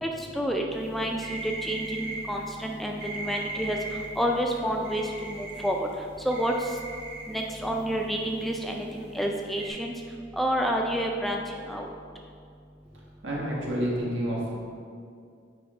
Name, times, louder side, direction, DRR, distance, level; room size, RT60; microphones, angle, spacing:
voice 1, 0.0-3.8 4.2-5.9 6.2-6.5 7.3-9.9 10.3-11.4 11.7-11.9, equal, ahead, 1 dB, 0.3 m, -29 dB
sound 1, 0.8-9.7, right 2 dB, 55° right, 1.1 m, -39 dB
voice 2, 13.2-14.6, equal, 80° right, -4 dB, 1.5 m, -29 dB
8.6 x 3.0 x 4.8 m, 2.3 s
head